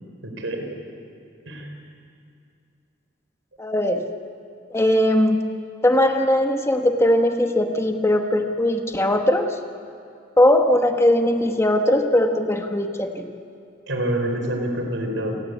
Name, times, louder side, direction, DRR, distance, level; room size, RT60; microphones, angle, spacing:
voice 1, 0.2-0.6 1.5-1.7 13.9-15.4, right 1 dB, 80° right, 4 dB, 4.5 m, -26 dB
voice 2, 3.6-4.0 4.7-5.5 5.8-9.5 10.4-13.3, left 1 dB, 15° left, 4 dB, 1.3 m, -19 dB
28.0 x 20.0 x 8.3 m, 2.4 s
head